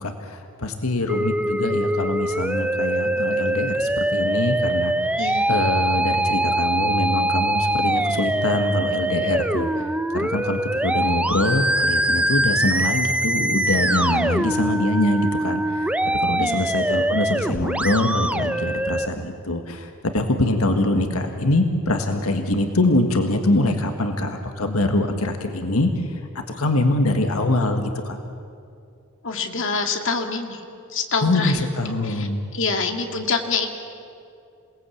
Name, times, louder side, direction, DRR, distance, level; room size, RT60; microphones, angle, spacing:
voice 1, 0.0-5.2 5.5-26.2 26.5-28.2 31.2-32.4, left 2 dB, 90° left, 5 dB, 1.7 m, -24 dB
Musical instrument, 1.1-19.1, right 1 dB, 5° right, 0.6 m, -23 dB
voice 2, 5.2-5.5 16.4-16.7 29.2-30.6 30.9-31.7 32.0-32.3 32.5-33.7, left 4 dB, 60° left, 4 dB, 2.1 m, -26 dB
28.0 x 19.0 x 8.5 m, 2.5 s
head